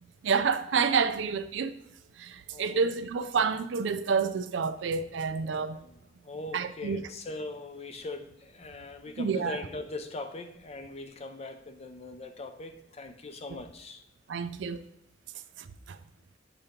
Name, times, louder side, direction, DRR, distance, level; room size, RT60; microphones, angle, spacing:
voice 1, 0.2-1.7 2.2-5.8 6.5-7.0 9.2-9.6 14.3-14.9 15.9-16.0, right 5 dB, 75° right, 0.4 m, -28 dB
voice 2, 2.5-2.9 5.4-14.0 15.3-15.4, left 2 dB, 35° left, 0.5 m, -41 dB
6.9 x 2.9 x 5.0 m
head